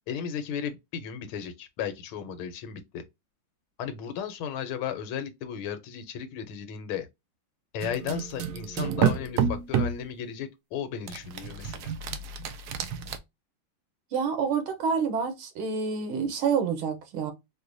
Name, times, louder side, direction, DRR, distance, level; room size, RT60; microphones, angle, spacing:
voice 1, 0.1-3.0 3.8-7.1 7.7-11.9, left 8 dB, 80° left, 1.5 m, -35 dB
sound 1, 7.8-10.0 11.1-13.2, right 7 dB, 70° right, 0.9 m, -29 dB
voice 2, 14.1-17.3, right 6 dB, 90° right, 1.8 m, -28 dB
4.7 x 2.2 x 2.5 m
omnidirectional pair, 2.2 m